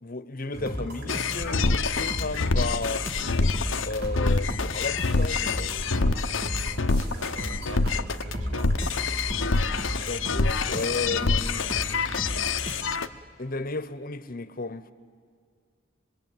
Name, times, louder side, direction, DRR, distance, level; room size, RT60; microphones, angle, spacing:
voice 1, 0.0-3.1 3.8-5.9 10.1-11.7 13.4-14.9, left 3 dB, 50° left, 1.1 m, -33 dB
sound 1, 0.5-13.0, equal, 55° right, 2.8 m, -35 dB
sound 2, 1.1-13.1, left 4 dB, 85° left, 0.9 m, -26 dB
voice 2, 7.0-8.9, right 3 dB, 85° right, 1.4 m, -45 dB
26.0 x 22.0 x 9.3 m
head